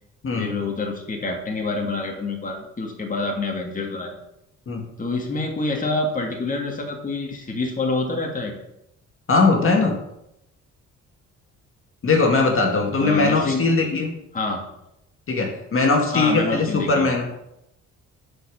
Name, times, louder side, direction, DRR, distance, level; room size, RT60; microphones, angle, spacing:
voice 1, 0.4-4.2 5.0-8.5 13.0-13.6 14.3-14.6 16.1-17.1, left 3 dB, 25° left, 1 dB, 2.2 m, -27 dB
voice 2, 9.3-10.0 12.0-14.1 15.3-17.3, left 3 dB, 45° left, 1 dB, 2.2 m, -20 dB
11.0 x 5.3 x 6.3 m, 0.82 s
cardioid pair, 90°, 30 cm